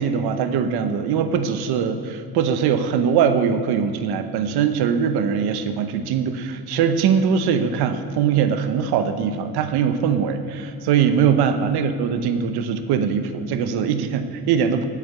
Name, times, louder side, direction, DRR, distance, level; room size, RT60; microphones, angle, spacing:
voice 1, 0.0-14.9, right 7 dB, 85° right, 9 dB, 0.8 m, -21 dB
8.5 x 6.6 x 8.2 m, 2.3 s
cardioid pair, 155°, 38 cm